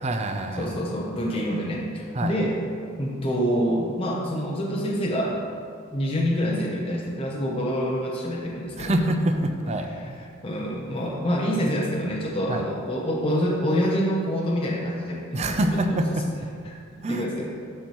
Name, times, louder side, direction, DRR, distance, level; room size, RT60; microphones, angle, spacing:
voice 1, 0.0-0.8 2.1-2.3 8.8-10.2 12.5-12.6 15.3-16.3 17.0-17.4, right 1 dB, 30° right, 6 dB, 0.5 m, -26 dB
voice 2, 0.6-2.5 3.0-5.4 5.9-9.0 10.0-10.1 10.4-16.0 16.7-16.8 17.1-17.4, equal, 25° left, -4 dB, 0.7 m, -26 dB
12.5 x 4.4 x 3.0 m, 2.2 s
head